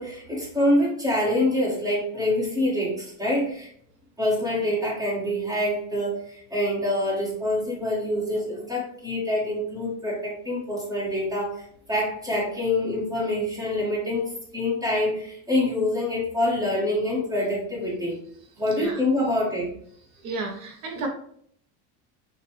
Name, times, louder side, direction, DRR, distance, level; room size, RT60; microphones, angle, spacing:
voice 1, 0.0-3.7 4.2-11.6 11.9-18.2 18.6-19.7, left 1 dB, 10° right, -6 dB, 1.5 m, -26 dB
voice 2, 18.7-19.0 20.2-21.1, right 3 dB, 65° right, 2 dB, 0.9 m, -32 dB
6.6 x 2.5 x 3.1 m, 0.64 s
cardioid pair, 175°, 39 cm